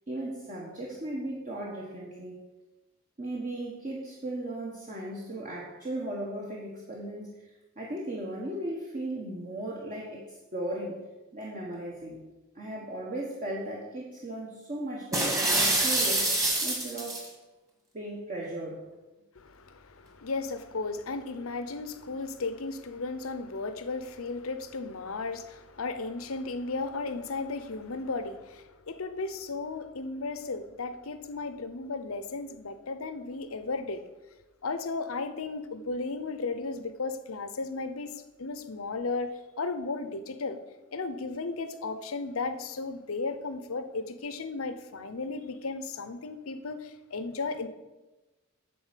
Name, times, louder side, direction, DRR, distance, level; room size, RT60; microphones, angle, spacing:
voice 1, 0.1-2.4 3.2-7.4 7.8-11.0 11.3-12.2 12.5-17.2 17.9-18.9, right 1 dB, 40° right, -3 dB, 1.3 m, -36 dB
sound 1, 15.1-17.3, right 2 dB, 15° right, 1.8 m, -26 dB
voice 2, 19.4-34.0 34.6-40.6 40.9-47.7, left 3 dB, 85° left, 10 dB, 0.8 m, -35 dB
9.5 x 4.3 x 7.4 m, 1.1 s
head